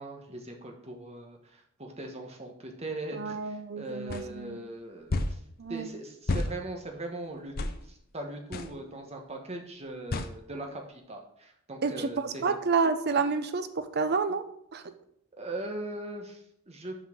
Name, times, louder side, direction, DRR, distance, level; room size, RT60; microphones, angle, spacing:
voice 1, 0.0-5.4 5.7-12.5 13.2-13.3 15.4-17.0, right 2 dB, 30° right, 2 dB, 1.2 m, -40 dB
voice 2, 3.1-4.6 5.6-5.9 11.8-14.4 14.7-14.8, right 4 dB, 50° right, 9 dB, 0.7 m, -29 dB
sound 1, 4.1-4.2 5.1-5.4 6.3-6.5 7.6-7.8 8.5-8.7 10.1-10.3, left 2 dB, 45° left, 0.6 m, -29 dB
6.1 x 5.7 x 5.6 m, 0.73 s
head